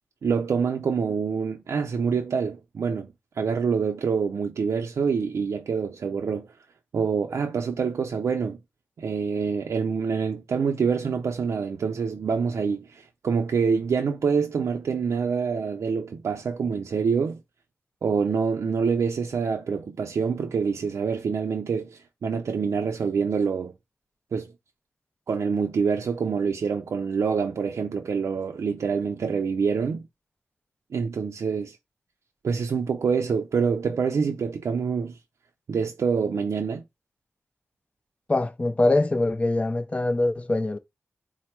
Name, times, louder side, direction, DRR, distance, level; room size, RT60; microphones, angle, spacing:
voice 1, 0.2-3.1 3.4-6.5 6.9-8.6 9.0-17.4 18.0-23.7 24.3-24.5 25.3-30.0 30.9-31.8 32.4-35.2 35.7-36.8, right 5 dB, 85° right, 0.4 m, -26 dB
voice 2, 38.3-40.8, left 2 dB, 25° left, 0.4 m, -23 dB
4.3 x 2.0 x 4.4 m
wide cardioid pair, 95°, 5 cm